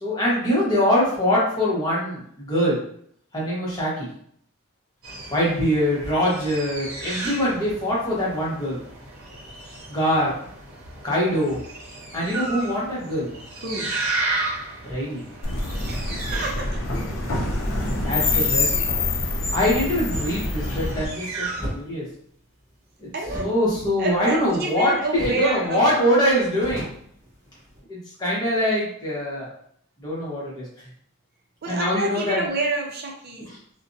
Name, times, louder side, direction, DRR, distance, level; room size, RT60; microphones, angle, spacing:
voice 1, 0.0-2.8 3.3-4.1 5.3-8.8 9.9-10.3 11.0-11.6 12.1-13.3 14.9-15.2 18.0-19.0 19.5-22.0 23.0-23.1 23.4-26.9 27.9-29.5 30.0-30.6 31.7-32.4 33.4-33.6, equal, 20° left, -6 dB, 0.9 m, -23 dB
sound 1, 5.0-21.6, right 3 dB, 90° right, 0.7 m, -34 dB
sound 2, 15.4-21.0, left 2 dB, 65° left, 0.5 m, -25 dB
voice 2, 15.9-16.8 23.1-23.5 24.0-26.0 31.6-33.5, right 2 dB, 45° right, 0 dB, 0.5 m, -29 dB
sound 3, 21.5-21.8 23.2-24.8 25.1-25.5 25.8-25.9 26.3-27.8, equal, 15° right, 1.1 m, -35 dB
2.5 x 2.1 x 2.5 m, 0.64 s
head